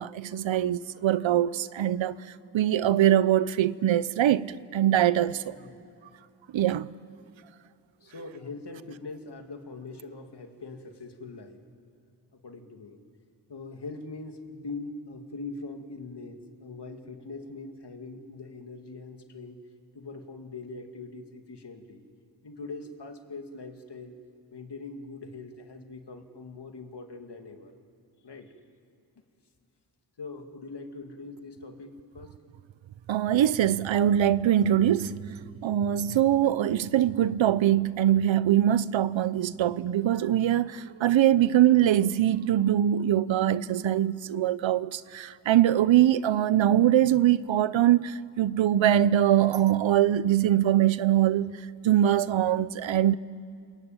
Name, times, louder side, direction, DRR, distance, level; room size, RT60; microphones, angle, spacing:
voice 1, 0.0-2.2 2.5-5.6 6.5-6.9 33.1-35.2 35.6-51.5 51.8-53.2, right 11 dB, 90° right, 0.7 m, -23 dB
voice 2, 5.5-5.8 8.0-11.6 12.3-13.0 13.5-19.6 19.9-22.0 22.4-24.2 24.5-27.7 28.2-28.5 30.2-32.3, left 3 dB, 65° left, 2.6 m, -42 dB
28.0 x 22.0 x 9.0 m
cardioid pair, 65°, 44 cm